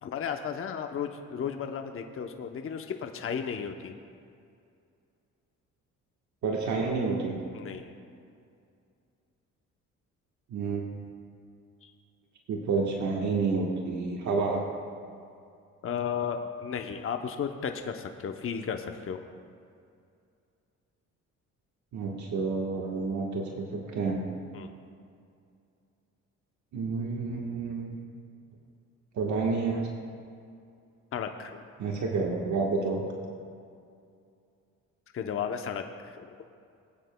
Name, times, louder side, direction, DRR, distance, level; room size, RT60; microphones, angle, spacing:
voice 1, 0.0-4.0 7.5-7.8 11.8-11.9 15.8-19.2 24.5-24.7 31.1-31.6 35.1-36.3, left 7 dB, 45° left, 5 dB, 0.7 m, -34 dB
voice 2, 6.4-7.4 10.5-10.8 12.5-14.7 21.9-24.2 26.7-28.0 29.1-29.9 31.8-33.0, right 4 dB, 70° right, -1 dB, 1.3 m, -29 dB
20.5 x 9.0 x 2.2 m, 2.4 s
cardioid pair, 90°, 30 cm